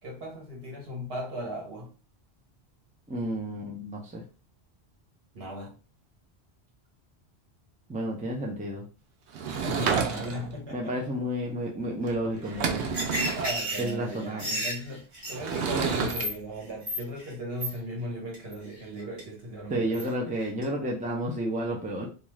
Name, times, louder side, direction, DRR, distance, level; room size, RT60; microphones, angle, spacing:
voice 1, 0.0-1.9 5.3-5.8 9.6-11.1 12.3-20.1, equal, 65° right, 1.2 m, -37 dB
voice 2, 3.1-4.2 7.9-8.8 10.7-12.9 13.8-14.4 19.7-22.1, right 1 dB, 10° right, 0.4 m, -31 dB
Sliding door / Wood, 9.3-10.6 12.1-12.2 12.4-13.5 15.3-16.3, right 6 dB, 85° right, 0.9 m, -29 dB
sound 1, 12.8-16.3 16.6-17.3 17.6-17.7 18.3-18.5 19.0-19.2 19.9-20.1 20.4-20.6, equal, 30° right, 1.2 m, -32 dB
2.5 x 2.3 x 3.1 m
omnidirectional pair, 1.1 m